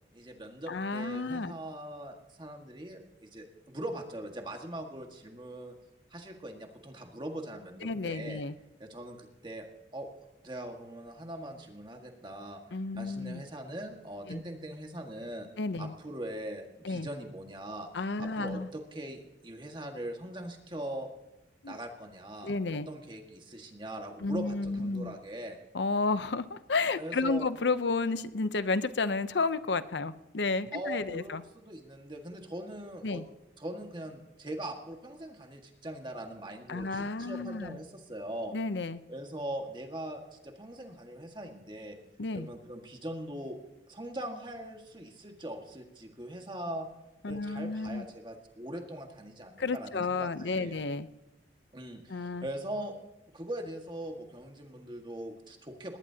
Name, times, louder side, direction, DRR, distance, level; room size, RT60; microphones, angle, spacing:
voice 1, 0.1-5.7 6.1-8.4 8.8-9.7 9.9-10.1 10.4-15.5 15.8-17.9 18.2-21.1 21.7-25.6 27.0-27.5 30.7-33.2 33.6-38.5 39.1-42.0 42.3-43.6 43.9-46.9 47.3-50.8 51.7-53.0 53.3-56.0, right 1 dB, 25° right, 3 dB, 1.7 m, -41 dB
voice 2, 0.7-1.5 7.8-8.5 12.7-13.4 14.3-14.4 15.6-15.9 16.8-17.1 17.9-18.7 21.6-21.8 22.4-22.9 24.2-25.1 25.7-31.4 33.0-33.2 36.7-37.8 38.5-39.0 42.2-42.5 47.2-48.0 49.6-51.1 52.1-52.5, left 3 dB, 80° left, 13 dB, 0.7 m, -32 dB
19.5 x 18.5 x 2.9 m, 0.98 s
head